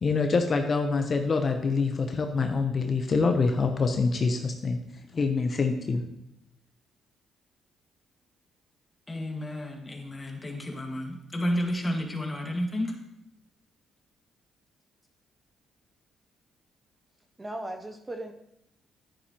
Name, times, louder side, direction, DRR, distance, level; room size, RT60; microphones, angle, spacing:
voice 1, 0.0-4.8 5.1-6.0, left 4 dB, 45° left, 5 dB, 0.8 m, -25 dB
voice 2, 9.1-13.0, equal, 20° left, 1 dB, 1.9 m, -31 dB
voice 3, 17.4-18.3, right 1 dB, 20° right, 5 dB, 0.7 m, -37 dB
10.5 x 9.4 x 3.0 m, 0.83 s
cardioid pair, 90°, 0 cm